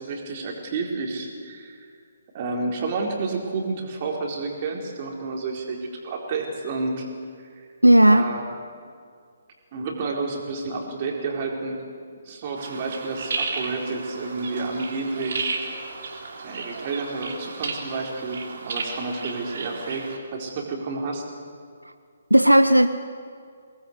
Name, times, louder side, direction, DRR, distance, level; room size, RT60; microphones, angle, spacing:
voice 1, 0.0-1.8 2.3-5.8 6.0-7.1 7.6-7.7 8.0-8.4 9.7-11.8 12.2-15.5 16.4-21.2, right 3 dB, 35° right, 0 dB, 4.2 m, -30 dB
voice 2, 7.8-8.3 22.3-22.9, right 1 dB, 90° right, 10 dB, 0.8 m, -14 dB
sound 1, 12.6-20.2, right 4 dB, 50° right, 3.1 m, -33 dB
23.5 x 19.0 x 8.2 m, 2.2 s
figure-of-eight pair, 135°, 0 cm